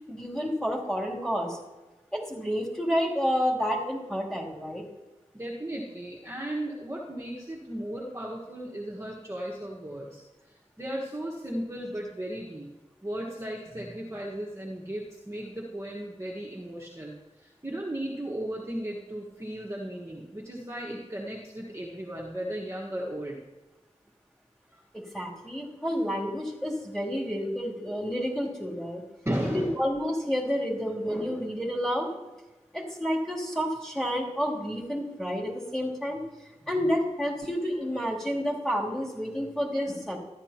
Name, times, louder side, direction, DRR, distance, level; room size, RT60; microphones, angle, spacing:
voice 1, 0.1-1.6 2.1-4.8 24.9-29.0 29.5-32.1 32.7-36.2 36.7-40.2, equal, 5° left, -5 dB, 3.0 m, -29 dB
voice 2, 5.3-12.7 13.0-23.4 24.7-24.8 29.2-29.8 36.8-36.9, right 1 dB, 20° right, -4 dB, 1.5 m, -36 dB
14.0 x 11.0 x 2.9 m, 1.1 s
wide cardioid pair, 60°, 12 cm